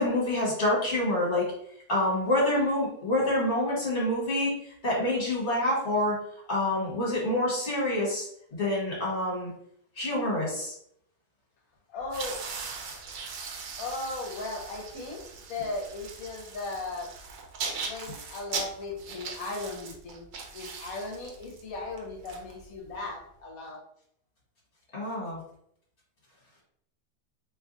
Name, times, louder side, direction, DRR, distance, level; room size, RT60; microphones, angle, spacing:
voice 1, 0.0-1.5 1.9-6.2 6.5-9.5 9.9-10.7 24.9-25.4, left 1 dB, 45° left, -5 dB, 1.5 m, -27 dB
voice 2, 11.9-12.5 12.8-13.2 13.8-17.1 17.9-20.3 20.5-23.8, left 3 dB, 65° left, 0 dB, 1.2 m, -37 dB
sound 1, 12.0-23.1, right 5 dB, 75° right, 1.1 m, -39 dB
3.0 x 2.3 x 3.8 m, 0.68 s
omnidirectional pair, 1.7 m